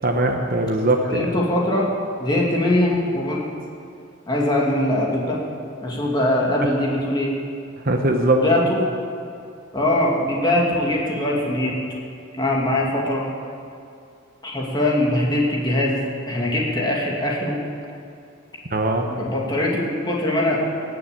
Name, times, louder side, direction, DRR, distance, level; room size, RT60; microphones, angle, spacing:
voice 1, 0.0-1.3 7.8-8.4 18.7-19.1, right 2 dB, 45° right, 3 dB, 1.1 m, -20 dB
voice 2, 1.0-1.9 2.2-3.4 4.3-5.4 5.8-7.3 8.4-8.8 9.7-11.7 12.4-13.3 14.4-16.0 16.3-17.6 19.1-20.6, left 1 dB, 20° left, -3 dB, 2.3 m, -21 dB
18.0 x 7.0 x 8.8 m, 2.5 s
head